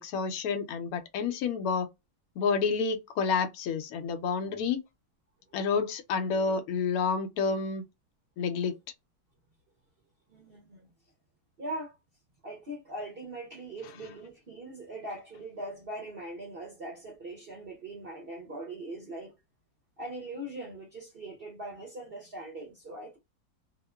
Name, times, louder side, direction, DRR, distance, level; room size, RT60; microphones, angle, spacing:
voice 1, 0.0-1.9 2.4-4.8 5.5-7.8 8.4-8.8, left 5 dB, 65° left, 1.0 m, -29 dB
voice 2, 10.3-10.9 11.6-12.0 12.4-19.3 20.0-23.2, right 1 dB, 50° right, 0.7 m, -41 dB
2.9 x 2.1 x 2.2 m
omnidirectional pair, 1.9 m